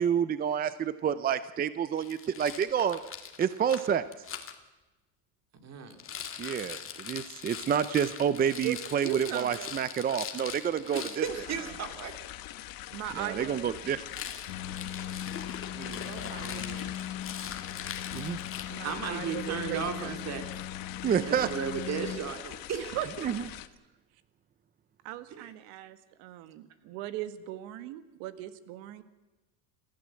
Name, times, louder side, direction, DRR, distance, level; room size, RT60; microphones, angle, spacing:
voice 1, 0.0-3.0 3.4-4.0 6.4-11.2 13.2-14.0 18.1-18.4 21.0-21.5 23.2-23.3, right 8 dB, 20° right, 14 dB, 0.6 m, -28 dB
Rattle, 2.0-4.5 5.9-11.3 14.0-19.0, left 8 dB, 30° left, 2.1 m, -42 dB
voice 2, 5.6-6.0 10.9-12.1 15.7-16.9 18.8-20.5 21.2-23.0 25.3-25.5, right 6 dB, 40° right, 7 dB, 3.1 m, -36 dB
voice 3, 8.6-9.8 11.5-11.8 12.9-13.7 16.1-17.0 18.7-20.2 22.7-23.4 25.0-29.0, right 13 dB, 75° right, 12 dB, 1.8 m, -39 dB
sound 1, 11.2-23.7, left 15 dB, 55° left, 1.3 m, -43 dB
sound 2, 14.5-22.2, left 11 dB, 80° left, 1.5 m, -39 dB
27.0 x 15.5 x 7.7 m, 1.1 s
cardioid pair, 135°, 41 cm